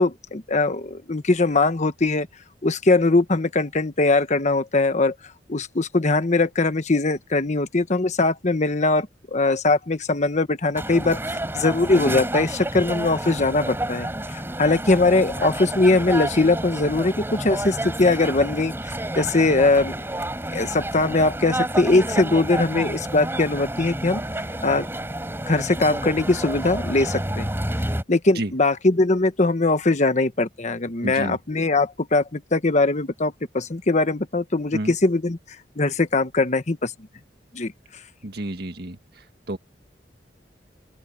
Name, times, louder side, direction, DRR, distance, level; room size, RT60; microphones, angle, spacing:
voice 1, 0.0-2.3 2.6-5.1 5.5-18.7 19.2-19.9 20.5-24.2 24.6-24.9 25.5-27.5 28.1-35.4 35.8-36.9 37.5-37.7, left 2 dB, 40° left, 1.1 m, -21 dB
sound 1, 10.7-28.0, right 1 dB, 15° right, 3.8 m, -29 dB
voice 2, 31.0-31.4 34.7-34.9 38.2-39.0 39.5-39.6, right 1 dB, 65° right, 1.8 m, -29 dB
open air
head